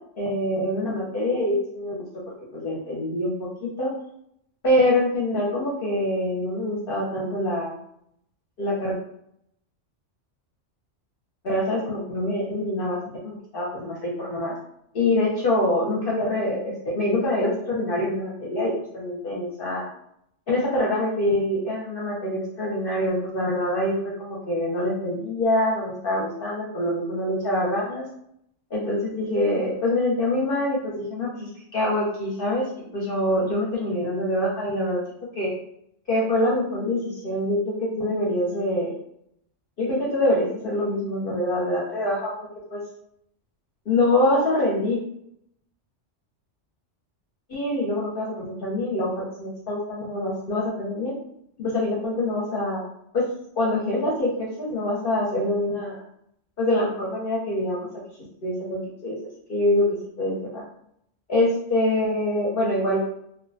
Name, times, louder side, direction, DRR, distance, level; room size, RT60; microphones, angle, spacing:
voice 1, 0.2-2.0 2.5-3.3 3.6-3.9 4.6-7.7 8.6-8.9 11.4-13.0 13.2-14.5 14.9-19.9 20.5-28.0 28.7-32.6 32.9-35.0 35.3-35.5 36.1-38.9 39.8-42.3 42.7-42.8 43.9-45.0 47.5-51.1 51.6-52.8 53.1-53.2 53.6-56.0 56.6-57.9 58.4-59.2 59.5-59.9 60.2-60.6 61.3-63.0, left 1 dB, 60° left, -5 dB, 0.7 m, -25 dB
2.4 x 2.1 x 2.5 m, 0.73 s
omnidirectional pair, 1.2 m